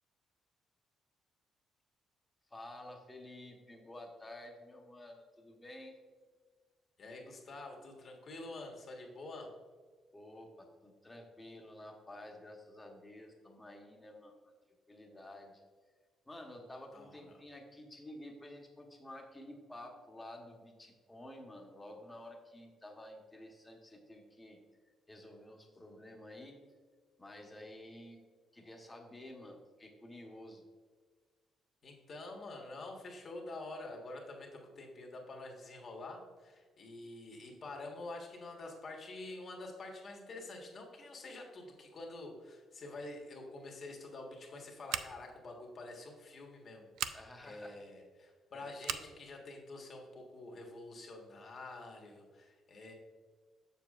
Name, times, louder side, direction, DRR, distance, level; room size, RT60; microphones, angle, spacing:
voice 1, 2.5-5.9 10.1-14.3 14.9-15.6 16.3-24.6 25.1-26.6 27.2-28.2 28.5-30.6 47.1-47.8 48.5-48.7, left 1 dB, 10° left, 1 dB, 1.0 m, -51 dB
voice 2, 7.0-9.5 16.9-17.2 31.8-52.9, left 2 dB, 40° left, 1 dB, 1.4 m, -47 dB
Scissors, 44.9-45.4 46.9-47.2 48.8-49.1, right 10 dB, 85° right, 0.3 m, -38 dB
7.1 x 7.0 x 2.4 m, 1.5 s
cardioid pair, 145°, 0 cm